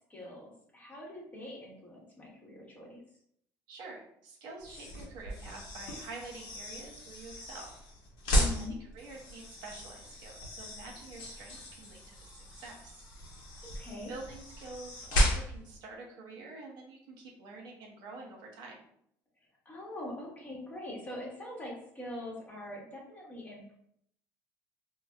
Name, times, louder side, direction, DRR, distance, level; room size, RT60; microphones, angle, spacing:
voice 1, 0.1-3.0 8.3-8.8 13.7-14.1 19.6-23.8, left 1 dB, 20° left, -3 dB, 1.0 m, -43 dB
voice 2, 3.7-7.7 8.6-13.0 14.1-18.8, right 3 dB, 70° right, -1 dB, 0.8 m, -47 dB
sound 1, 4.6-15.8, equal, 75° left, 0.9 m, -35 dB
3.9 x 2.0 x 2.3 m, 0.70 s
cardioid pair, 135°, 8 cm